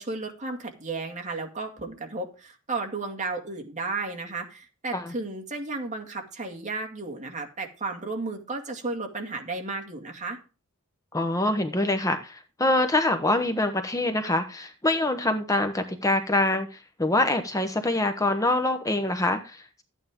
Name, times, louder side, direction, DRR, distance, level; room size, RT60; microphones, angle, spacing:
voice 1, 0.0-10.4, right 3 dB, 35° right, 3 dB, 2.2 m, -33 dB
voice 2, 11.1-19.8, left 2 dB, 15° left, 7 dB, 0.9 m, -25 dB
13.0 x 9.1 x 3.7 m, 0.34 s
head